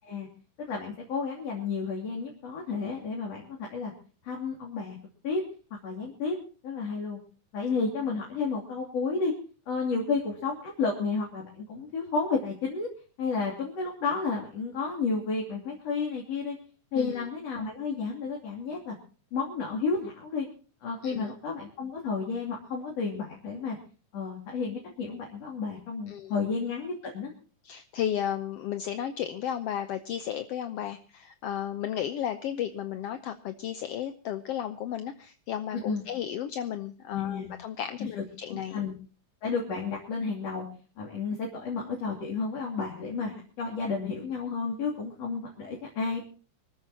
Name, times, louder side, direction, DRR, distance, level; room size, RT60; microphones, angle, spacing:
voice 1, 0.6-3.9 4.2-5.0 5.2-5.4 5.8-6.4 6.6-7.2 7.5-9.3 9.7-12.9 13.2-16.6 16.9-19.0 19.3-20.5 20.8-23.8 24.1-27.3 35.7-36.0 37.1-37.5 38.0-38.2 38.5-38.9 39.4-40.7 41.0-46.2, left 4 dB, 55° left, -3 dB, 4.0 m, -31 dB
voice 2, 26.1-26.5 27.6-38.8, left 10 dB, 70° left, 10 dB, 1.5 m, -34 dB
26.0 x 14.0 x 2.9 m, 0.38 s
omnidirectional pair, 3.6 m